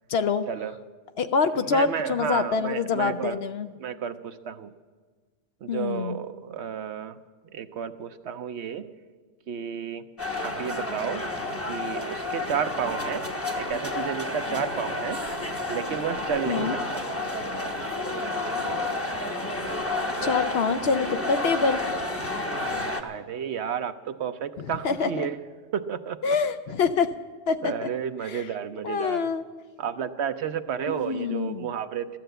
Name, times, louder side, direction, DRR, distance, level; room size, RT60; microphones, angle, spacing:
voice 1, 0.1-0.4 1.2-3.7 5.7-6.2 16.5-16.8 20.2-21.8 24.6-25.3 26.2-27.1 27.5-27.9 28.3-28.4 28.8-29.4 30.9-31.7, left 5 dB, 60° left, 10 dB, 0.7 m, -26 dB
voice 2, 1.6-3.4 3.8-4.7 5.6-7.2 7.5-8.9 9.5-10.1 10.4-11.2 11.7-13.3 13.5-15.2 15.7-17.1 23.0-25.4 25.7-26.4 27.6-29.3 29.8-32.2, right 7 dB, 65° right, 10 dB, 0.9 m, -32 dB
sound 1, 10.2-23.0, left 2 dB, 15° left, 0.8 m, -30 dB
14.5 x 12.0 x 7.8 m, 1.4 s
omnidirectional pair, 1.3 m